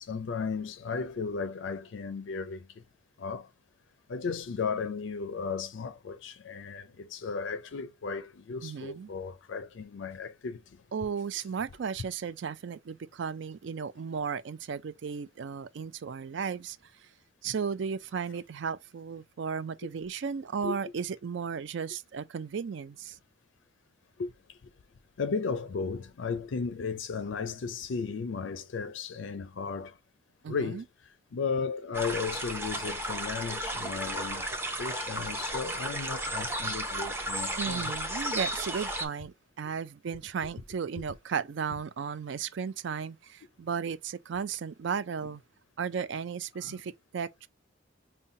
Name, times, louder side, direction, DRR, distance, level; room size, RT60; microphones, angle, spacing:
voice 1, 0.0-2.8 3.2-3.5 4.1-10.8 17.4-17.5 20.6-20.8 24.2-24.6 25.2-30.0 30.5-30.8 31.3-34.5 34.8-37.9 46.6-46.8, left 5 dB, 65° left, 0.4 m, -35 dB
voice 2, 8.6-9.1 10.9-16.8 17.4-23.2 30.4-30.8 37.6-45.4 45.8-47.5, right 6 dB, 60° right, 0.4 m, -35 dB
sound 1, 31.9-39.1, right 1 dB, 10° right, 0.7 m, -34 dB
5.5 x 2.2 x 2.6 m
head